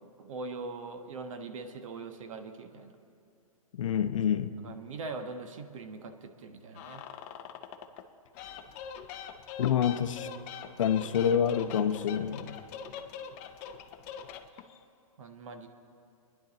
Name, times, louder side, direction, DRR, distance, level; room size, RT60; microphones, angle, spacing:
voice 1, 0.0-3.0 4.6-7.0 15.2-15.7, right 3 dB, 60° right, 7 dB, 1.2 m, -42 dB
voice 2, 3.7-4.5 9.6-10.3 10.8-12.6, left 8 dB, 60° left, 10 dB, 0.8 m, -27 dB
sound 1, 6.7-8.1 8.3-14.8, left 7 dB, 25° left, 0.6 m, -43 dB
26.0 x 10.5 x 4.0 m, 2.6 s
hypercardioid pair, 150°, 19 cm